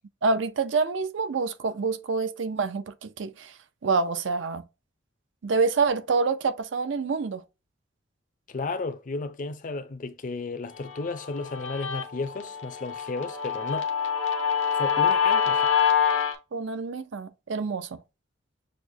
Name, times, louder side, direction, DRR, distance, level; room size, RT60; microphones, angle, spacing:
voice 1, 0.2-3.5 3.8-4.6 5.4-7.4 16.5-18.0, right 4 dB, 75° right, 0.5 m, -27 dB
voice 2, 8.5-13.9 14.7-15.7, left 3 dB, 45° left, 0.5 m, -33 dB
Guitar, 10.8-16.4, left 7 dB, 80° left, 0.8 m, -26 dB
6.4 x 2.1 x 2.7 m
head